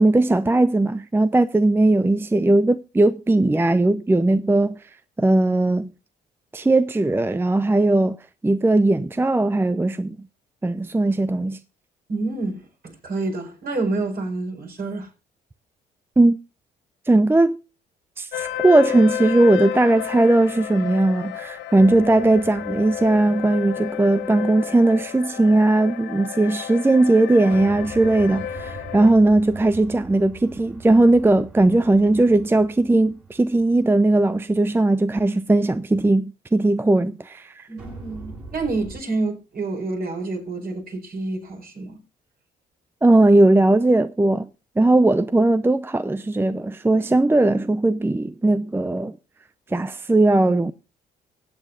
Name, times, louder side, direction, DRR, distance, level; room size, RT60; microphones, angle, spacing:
voice 1, 0.0-4.8 5.2-5.9 6.5-8.2 8.4-10.2 10.6-11.6 16.2-16.4 17.1-17.6 18.2-37.6 43.0-44.5 44.8-49.2 49.7-50.7, right 2 dB, 10° right, 0.6 m, -18 dB
voice 2, 12.1-15.1 37.7-42.0, right 3 dB, 50° right, 4.6 m, -28 dB
sound 1, 18.3-29.1, left 10 dB, 70° left, 1.9 m, -31 dB
sound 2, 21.8-24.3 27.5-34.7 37.8-39.0, right 4 dB, 80° right, 7.5 m, -42 dB
24.5 x 8.2 x 2.5 m
hypercardioid pair, 50°, 20 cm